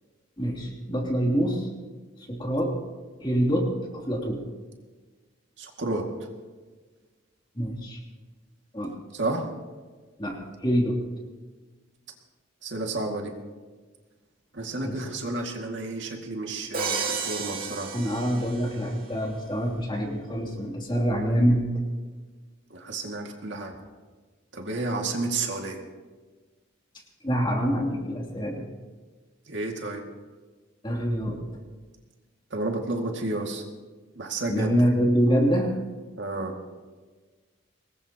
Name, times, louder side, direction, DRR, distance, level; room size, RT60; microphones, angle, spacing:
voice 1, 0.4-1.7 2.3-2.7 3.2-4.4 7.5-8.0 8.7-8.9 10.2-11.0 14.8-15.0 17.9-21.7 27.2-28.7 30.8-31.4 34.5-35.7, equal, 25° left, 0 dB, 2.9 m, -25 dB
voice 2, 5.6-6.3 9.1-9.5 12.6-13.3 14.5-17.9 22.7-23.7 24.5-25.8 29.5-30.0 32.5-33.6 34.2-34.7 36.2-36.5, right 2 dB, 65° right, 2 dB, 2.2 m, -31 dB
Crash cymbal, 16.7-18.9, right 5 dB, 45° right, 2.6 m, -32 dB
24.0 x 20.0 x 3.0 m, 1.4 s
head